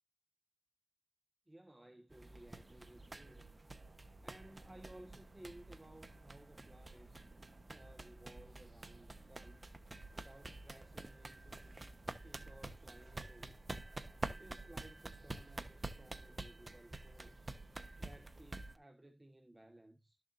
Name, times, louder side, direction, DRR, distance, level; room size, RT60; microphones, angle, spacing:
voice 1, 1.5-3.4 4.2-7.3 7.7-9.6 10.1-11.8 12.2-13.5 14.2-17.5 18.0-20.2, right 1 dB, 25° right, 1.4 m, -59 dB
sound 1, 2.1-18.8, right 2 dB, 40° right, 1.1 m, -49 dB
sound 2, 3.7-16.2, right 3 dB, 70° right, 2.0 m, -73 dB
13.0 x 7.1 x 2.6 m
cardioid pair, 40°, 0 cm